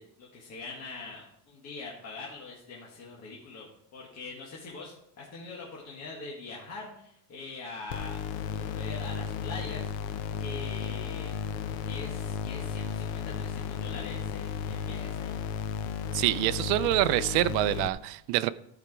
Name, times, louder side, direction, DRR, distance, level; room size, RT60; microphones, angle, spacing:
voice 1, 0.0-8.2 8.5-10.1 10.4-11.4 11.8-15.4, left 3 dB, 35° left, -3 dB, 1.7 m, -43 dB
sound 1, 7.9-17.9, left 7 dB, 85° left, 0.9 m, -34 dB
voice 2, 16.1-18.5, right 16 dB, 75° right, 13 dB, 0.6 m, -26 dB
13.5 x 4.9 x 4.7 m, 0.74 s
cardioid pair, 170°, 43 cm